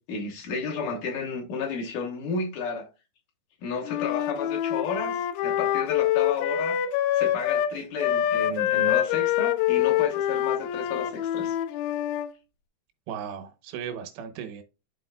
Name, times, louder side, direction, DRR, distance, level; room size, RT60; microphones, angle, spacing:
voice 1, 0.0-2.9 3.6-6.8 7.1-11.6, left 5 dB, 70° left, 2.1 m, -32 dB
Wind instrument woodwind instrument, 3.8-7.7 8.0-12.3, left 11 dB, 85° left, 2.7 m, -25 dB
voice 2, 13.1-14.6, right 8 dB, 85° right, 3.1 m, -36 dB
12.0 x 4.2 x 2.3 m
omnidirectional pair, 4.8 m